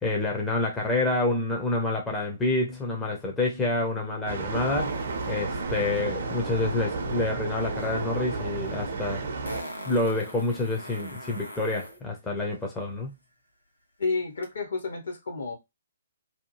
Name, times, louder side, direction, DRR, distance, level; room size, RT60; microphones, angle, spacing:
voice 1, 0.0-5.0 5.3-9.3 9.9-13.1, left 2 dB, 10° left, 0.6 m, -28 dB
sound 1, 4.3-9.6, right 3 dB, 50° right, 0.7 m, -32 dB
Fart, 9.4-12.0 14.4-14.5, equal, 85° left, 1.0 m, -40 dB
voice 2, 14.0-15.6, left 4 dB, 60° left, 1.2 m, -30 dB
2.7 x 2.3 x 2.9 m
figure-of-eight pair, 130°, 0 cm